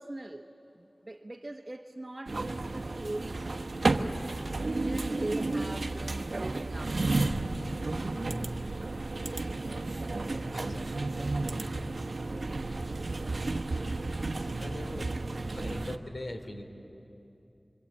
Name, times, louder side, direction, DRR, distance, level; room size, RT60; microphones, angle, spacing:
voice 1, 0.0-3.4 3.9-7.0, right 2 dB, 35° right, 2 dB, 0.9 m, -41 dB
sound 1, 2.3-16.0, right 2 dB, 70° right, 1.0 m, -32 dB
voice 2, 10.5-11.1 13.5-14.2 14.5-15.1 15.5-16.6, left 1 dB, 70° left, 3 dB, 3.0 m, -42 dB
25.5 x 25.5 x 8.6 m, 2.9 s
wide cardioid pair, 60°, 0 cm